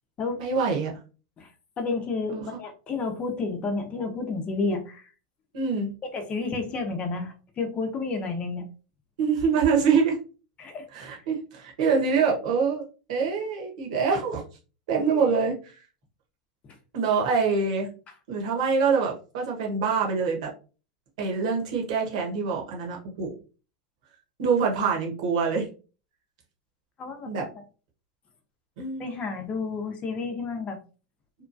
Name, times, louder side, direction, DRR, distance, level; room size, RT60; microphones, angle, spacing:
voice 1, 0.4-0.9 2.3-2.4 5.5-5.9 9.2-10.2 10.9-14.4 14.9-15.8 16.9-17.9 18.3-20.5 21.2-23.4 24.4-25.7 27.2-27.4 28.8-29.1, right 5 dB, 70° right, 0 dB, 1.1 m, -25 dB
voice 2, 1.8-5.1 6.0-8.7 10.6-10.8 15.0-15.2 16.7-16.8 27.0-27.6 29.0-30.8, left 4 dB, 30° left, 5 dB, 0.7 m, -31 dB
2.9 x 2.3 x 2.6 m, 0.35 s
hypercardioid pair, 95°, 4 cm